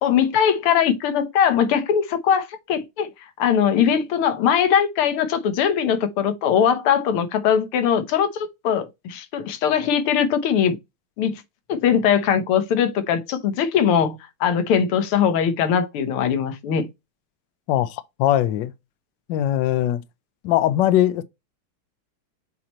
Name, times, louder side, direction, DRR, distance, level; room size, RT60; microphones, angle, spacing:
voice 1, 0.0-3.1 3.4-10.8 11.2-11.4 11.7-16.9, left 8 dB, 90° left, 1.9 m, -21 dB
voice 2, 17.7-18.7 19.3-20.0 20.4-21.2, left 12 dB, 70° left, 1.2 m, -20 dB
7.7 x 3.0 x 4.2 m
omnidirectional pair, 2.3 m